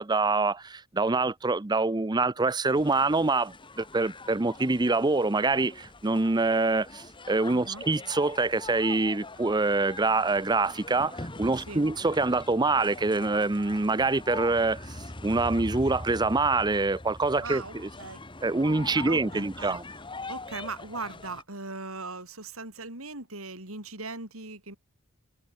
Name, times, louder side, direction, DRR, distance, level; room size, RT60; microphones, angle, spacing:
voice 1, 0.0-15.0 15.2-17.9 18.4-19.8, right 3 dB, 20° right, 0.6 m, -25 dB
sound 1, 2.7-21.4, left 2 dB, 20° left, 2.6 m, -43 dB
voice 2, 7.5-7.8 11.6-11.8 17.4-18.2 18.9-19.8 20.3-24.8, right 3 dB, 70° right, 7.0 m, -39 dB
head